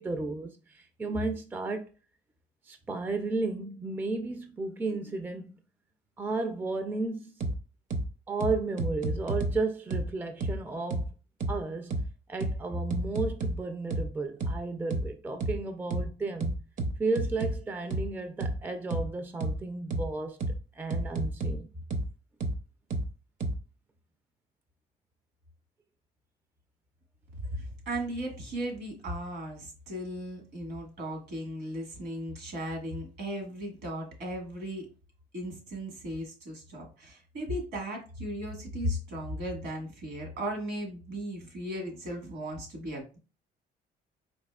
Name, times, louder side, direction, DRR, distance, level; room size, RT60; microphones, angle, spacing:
voice 1, 0.0-1.9 2.7-5.5 6.2-7.3 8.3-11.1 11.5-11.9 12.3-16.5 17.0-20.4 20.8-21.7, right 3 dB, 10° right, 0.4 m, -33 dB
sound 1, 7.4-7.5 7.9-8.0 8.4-9.5 9.9-10.0 10.4-10.5 10.9-11.0 11.4-11.5 11.9-12.0 12.4-12.5 12.9-13.5 13.9-14.0 14.4-14.5 14.9-15.0 15.4-15.5 15.9-16.0 16.4-17.5 17.9-18.0 18.4-18.5 18.9-19.0 19.4-19.5 19.9-20.0 20.4-20.5 20.9-21.5 21.9-22.0 22.4-22.5 22.9-23.0 23.4-23.5, right 2 dB, 50° right, 0.7 m, -29 dB
voice 2, 27.4-34.9 35.3-43.2, equal, 70° right, 1.6 m, -36 dB
4.2 x 2.7 x 2.3 m
cardioid pair, 110°, 17 cm